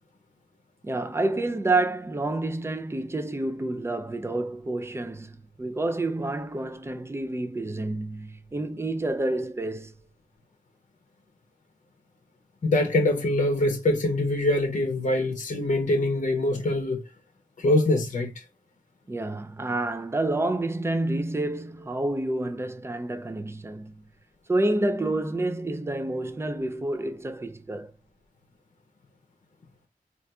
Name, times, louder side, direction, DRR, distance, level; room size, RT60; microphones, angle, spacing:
voice 1, 0.8-9.9 19.1-24.0 24.5-27.9, right 2 dB, 15° right, 0.4 m, -29 dB
voice 2, 12.6-17.1 17.6-18.4, left 2 dB, 55° left, 0.7 m, -24 dB
3.9 x 2.4 x 2.3 m
wide cardioid pair, 100°, 15 cm